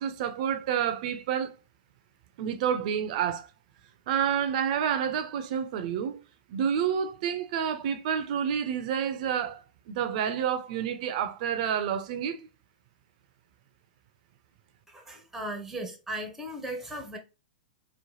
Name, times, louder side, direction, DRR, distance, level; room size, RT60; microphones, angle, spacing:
voice 1, 0.0-1.5 2.4-3.5 4.1-6.2 6.5-9.6 9.9-12.4, right 8 dB, 55° right, 0.5 m, -29 dB
voice 2, 14.9-17.2, right 1 dB, 5° right, 0.6 m, -37 dB
3.1 x 2.1 x 2.7 m
hypercardioid pair, 125°, 5 cm